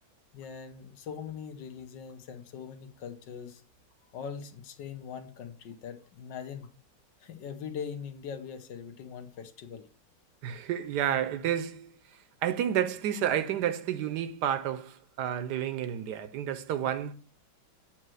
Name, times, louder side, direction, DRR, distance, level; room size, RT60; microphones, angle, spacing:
voice 1, 0.3-3.6 4.1-6.7 7.2-9.9, left 7 dB, 75° left, 1.5 m, -41 dB
voice 2, 10.4-11.9 12.4-17.1, right 10 dB, 75° right, 1.1 m, -30 dB
8.8 x 3.0 x 6.2 m
omnidirectional pair, 1.9 m